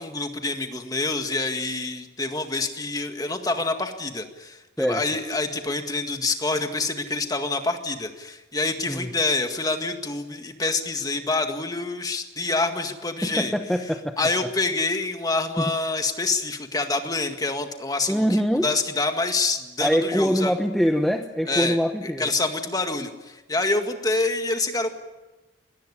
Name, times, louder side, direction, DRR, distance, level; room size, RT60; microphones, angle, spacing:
voice 1, 0.0-13.5 14.2-20.5 21.5-21.8 22.0-24.9, left 3 dB, 20° left, 6 dB, 1.9 m, -27 dB
voice 2, 13.2-14.1 15.6-15.7 18.1-18.7 19.8-22.3, equal, ahead, 5 dB, 0.9 m, -23 dB
21.5 x 18.5 x 9.9 m, 1.1 s
head